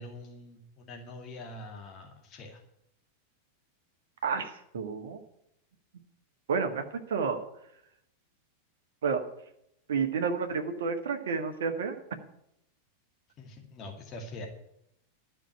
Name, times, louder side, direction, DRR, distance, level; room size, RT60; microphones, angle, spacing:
voice 1, 0.0-2.6 13.4-14.5, left 1 dB, 30° left, 2 dB, 2.2 m, -44 dB
voice 2, 4.2-5.2 6.5-7.5 9.0-9.3 9.9-12.0, right 5 dB, 60° right, 6 dB, 1.5 m, -30 dB
12.5 x 6.1 x 9.5 m, 0.76 s
figure-of-eight pair, 90°, 0 cm